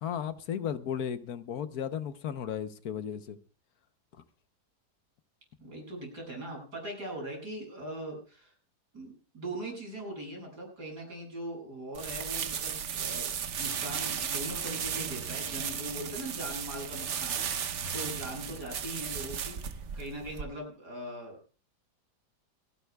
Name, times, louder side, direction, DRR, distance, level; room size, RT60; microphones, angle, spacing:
voice 1, 0.0-3.4, left 8 dB, 65° left, 11 dB, 1.3 m, -35 dB
voice 2, 5.6-8.5 8.9-19.5 19.9-21.4, right 1 dB, 75° right, 0 dB, 8.0 m, -41 dB
sound 1, 11.9-20.4, right 7 dB, 50° right, 1.0 m, -35 dB
28.5 x 11.0 x 2.3 m, 0.35 s
omnidirectional pair, 1.8 m